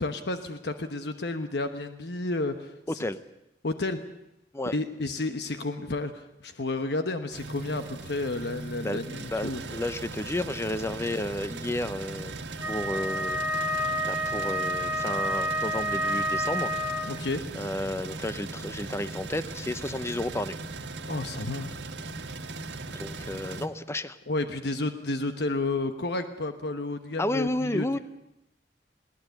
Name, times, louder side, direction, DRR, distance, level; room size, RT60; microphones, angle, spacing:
voice 1, 0.0-2.7 3.6-4.0 4.7-9.6 17.0-17.4 21.1-21.7 24.3-28.0, left 2 dB, 70° left, 8 dB, 1.1 m, -31 dB
voice 2, 2.9-3.2 4.5-4.7 8.8-12.3 12.7-16.7 17.5-20.6 22.9-24.2 27.2-28.0, left 1 dB, 15° left, 13 dB, 0.7 m, -32 dB
sound 1, 7.3-23.7, right 3 dB, 85° right, 1.6 m, -38 dB
Wind instrument woodwind instrument, 12.6-17.3, equal, 10° right, 1.5 m, -29 dB
21.0 x 18.0 x 8.2 m, 0.85 s
head